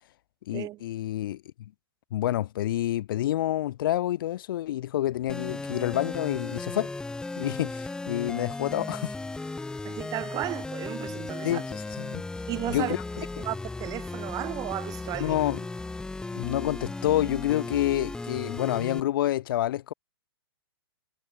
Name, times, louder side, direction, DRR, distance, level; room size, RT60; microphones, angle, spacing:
voice 1, 0.5-1.7 2.1-6.9 7.4-9.1 11.4-12.2 12.7-13.3 15.2-15.6 16.3-19.9, left 13 dB, 55° left, 3.0 m, -28 dB
sound 1, 5.3-19.0, left 3 dB, 5° left, 1.6 m, -36 dB
voice 2, 9.8-11.6 12.5-12.9 13.4-15.4, right 16 dB, 25° right, 2.0 m, -34 dB
hypercardioid pair, 135°, 13 cm